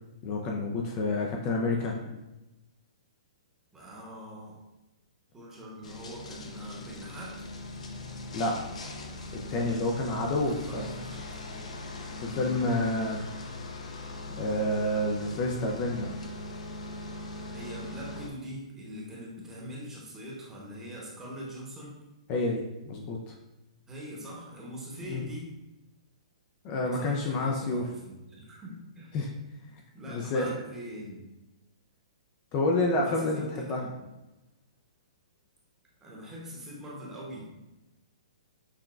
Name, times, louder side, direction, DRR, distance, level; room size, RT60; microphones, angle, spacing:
voice 1, 0.2-1.9 8.3-8.6 9.5-10.9 12.2-13.2 14.4-16.1 22.3-23.3 25.1-25.2 26.6-27.8 29.1-29.3 30.1-30.6 32.5-33.8, left 2 dB, 30° left, 0 dB, 0.4 m, -29 dB
voice 2, 3.7-4.6 5.3-7.4 10.5-11.8 17.5-21.9 23.9-25.5 26.8-29.1 29.9-31.3 32.9-34.0 36.0-37.5, equal, 10° right, -4 dB, 0.9 m, -43 dB
sound 1, 5.8-18.3, left 2 dB, 80° left, 0.6 m, -40 dB
5.8 x 2.2 x 2.4 m, 1.0 s
hypercardioid pair, 140°, 4 cm